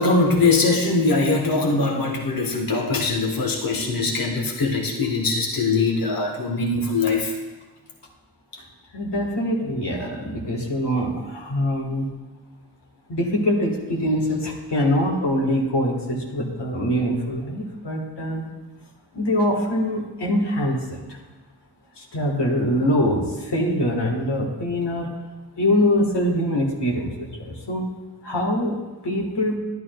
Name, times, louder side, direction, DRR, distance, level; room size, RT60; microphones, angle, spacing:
voice 1, 0.0-7.3, left 3 dB, 60° left, 0 dB, 1.0 m, -22 dB
voice 2, 8.9-12.1 13.1-18.5 19.1-21.0 22.0-25.1 25.6-27.9 28.2-28.7 29.0-29.6, left 1 dB, 90° left, -1 dB, 1.4 m, -23 dB
11.0 x 11.0 x 2.2 m, 1.2 s
wide cardioid pair, 55°, 40 cm